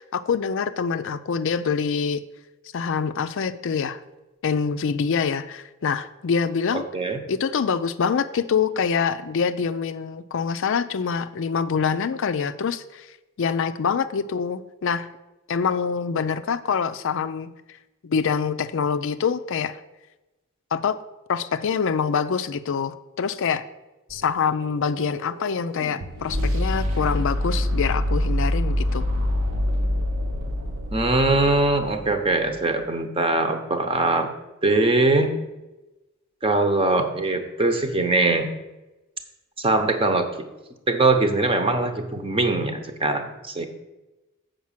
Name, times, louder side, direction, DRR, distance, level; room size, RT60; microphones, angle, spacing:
voice 1, 0.0-2.2 2.7-4.0 4.4-6.8 7.3-13.1 13.4-15.1 15.5-17.5 18.0-19.8 20.7-21.0 21.3-23.7 24.1-29.1, left 6 dB, 65° left, 12 dB, 0.4 m, -25 dB
voice 2, 6.7-7.2 30.9-34.3 34.6-35.3 36.4-38.5 39.6-40.3 40.9-43.7, right 2 dB, 25° right, 6 dB, 0.9 m, -22 dB
sound 1, 24.1-32.2, left 1 dB, 80° right, 1.0 m, -26 dB
7.4 x 5.1 x 7.3 m, 1.0 s
head